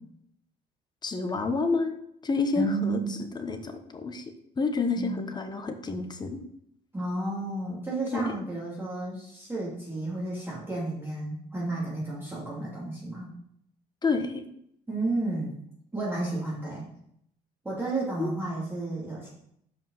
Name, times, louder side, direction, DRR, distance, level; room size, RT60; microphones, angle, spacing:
voice 1, 1.0-1.9 2.2-3.0 3.3-4.2 4.6-6.4 8.1-8.3 14.0-14.4 18.2-18.3, left 4 dB, 25° left, 7 dB, 1.0 m, -29 dB
voice 2, 2.5-3.3 5.0-5.3 6.9-13.3 14.9-15.5 15.9-16.9 17.6-19.3, right 2 dB, 15° right, -7 dB, 2.7 m, -32 dB
7.2 x 5.3 x 5.6 m, 0.73 s
cardioid pair, 110°, 17 cm